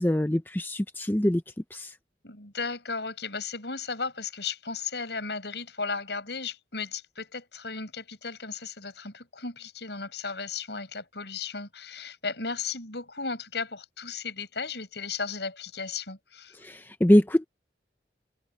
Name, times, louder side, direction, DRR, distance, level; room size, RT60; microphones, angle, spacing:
voice 1, 0.0-1.4 1.7-1.9 16.6-17.5, equal, 10° left, 0.6 m, -23 dB
voice 2, 2.2-16.6, left 4 dB, 75° left, 5.9 m, -35 dB
head